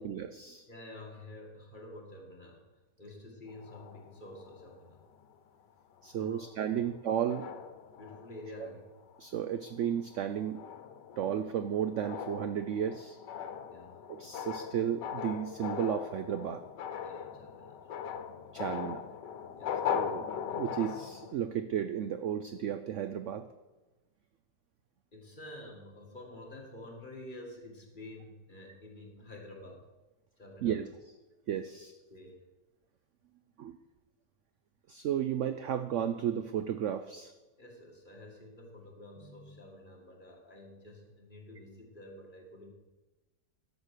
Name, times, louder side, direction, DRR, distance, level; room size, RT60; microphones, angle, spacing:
voice 1, 0.0-0.7 6.0-7.5 8.6-8.7 9.2-10.6 11.2-13.2 14.1-16.6 18.5-19.1 19.9-20.3 20.5-23.5 30.6-30.9 31.5-31.9 33.6-33.8 34.9-37.3, right 9 dB, 75° right, 10 dB, 0.7 m, -33 dB
voice 2, 0.7-2.6 3.0-5.0 6.2-6.4 6.7-6.8 7.9-8.9 13.7-14.0 17.0-17.9 19.6-19.8 25.1-29.9 30.4-30.8 31.6-31.7 32.1-32.4 37.6-42.7, left 1 dB, 30° left, 0 dB, 2.1 m, -49 dB
sound 1, 3.5-5.3 6.0-6.2 6.5-6.9 7.3-8.6 9.0-9.3 9.7-21.3, left 8 dB, 85° left, 1.5 m, -40 dB
12.0 x 6.8 x 6.5 m, 1.1 s
omnidirectional pair, 1.8 m